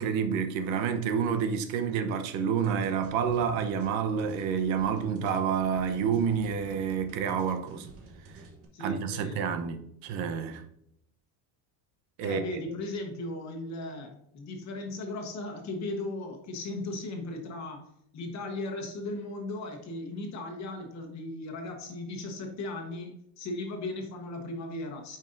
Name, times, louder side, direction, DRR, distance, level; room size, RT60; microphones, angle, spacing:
voice 1, 0.0-7.9 8.3-8.4 8.8-10.6 12.2-12.4, right 7 dB, 75° right, 1.0 m, -29 dB
sound 1, 2.6-8.6, right 2 dB, 30° right, 1.2 m, -50 dB
voice 2, 8.7-9.4 12.2-17.8 18.1-25.2, left 2 dB, 35° left, 1.2 m, -37 dB
9.1 x 5.4 x 2.6 m
cardioid pair, 180°, 47 cm